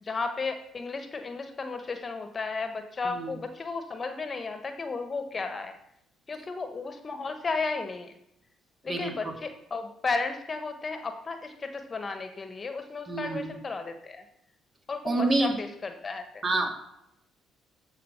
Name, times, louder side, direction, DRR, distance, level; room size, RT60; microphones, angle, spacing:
voice 1, 0.0-5.7 6.3-8.1 8.8-14.2 14.9-16.4, left 4 dB, 35° left, 7 dB, 1.2 m, -34 dB
voice 2, 13.1-13.5 15.0-15.5 16.4-16.7, right 2 dB, 35° right, 3 dB, 2.2 m, -27 dB
14.0 x 5.1 x 5.1 m, 0.78 s
hypercardioid pair, 45°, 0 cm